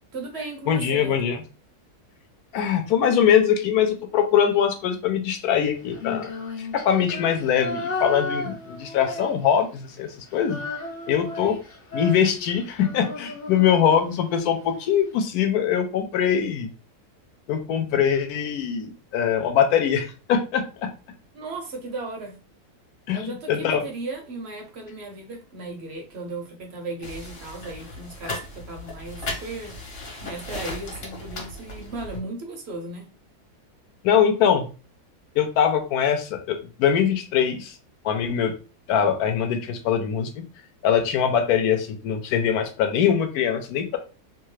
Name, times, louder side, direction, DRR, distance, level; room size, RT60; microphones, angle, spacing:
voice 1, 0.1-1.2 21.3-22.4 23.1-29.7 30.2-33.1, right 2 dB, 60° right, 2 dB, 0.7 m, -36 dB
voice 2, 0.7-1.4 2.5-6.3 6.6-10.6 11.1-11.6 11.9-16.7 17.5-20.9 23.1-23.8 34.0-34.7 35.4-37.8 38.0-38.5 38.9-40.4 40.8-44.0, left 8 dB, 75° left, 5 dB, 1.1 m, -22 dB
Female singing, 5.9-9.8 10.1-14.4, left 2 dB, 45° left, 0.7 m, -34 dB
sound 1, 27.0-32.2, left 1 dB, 60° left, 1.2 m, -36 dB
2.8 x 2.3 x 3.1 m, 0.34 s
omnidirectional pair, 1.7 m